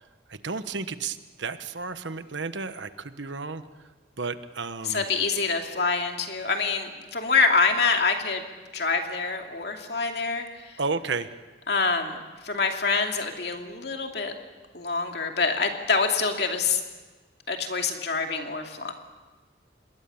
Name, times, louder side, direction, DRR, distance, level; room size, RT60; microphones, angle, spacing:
voice 1, 0.3-3.6 4.2-5.0 10.8-11.3, right 4 dB, 70° right, 11 dB, 1.2 m, -32 dB
voice 2, 4.8-8.4 8.7-10.8 11.7-12.2 12.4-14.3 14.7-16.8 17.5-18.9, left 4 dB, 55° left, 3 dB, 2.6 m, -26 dB
27.0 x 21.0 x 7.1 m, 1.3 s
head